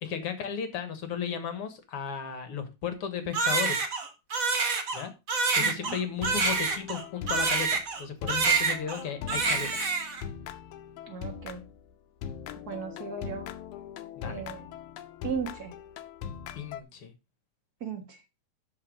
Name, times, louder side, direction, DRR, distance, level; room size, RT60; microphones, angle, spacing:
voice 1, 0.0-3.9 4.9-5.1 5.5-9.8 14.2-14.5 16.5-17.1, left 7 dB, 55° left, 1.8 m, -35 dB
Crying sobbing, 3.3-8.0 8.3-9.0 9.3-10.2, right 4 dB, 60° right, 0.8 m, -27 dB
voice 2, 5.6-6.0 11.1-11.7 12.7-13.5 14.2-14.6 15.2-15.7 17.8-18.2, right 6 dB, 40° right, 1.4 m, -36 dB
sound 1, 6.1-7.9 8.2-11.8 12.2-16.8, left 8 dB, 75° left, 2.0 m, -41 dB
12.5 x 4.3 x 5.2 m
omnidirectional pair, 3.9 m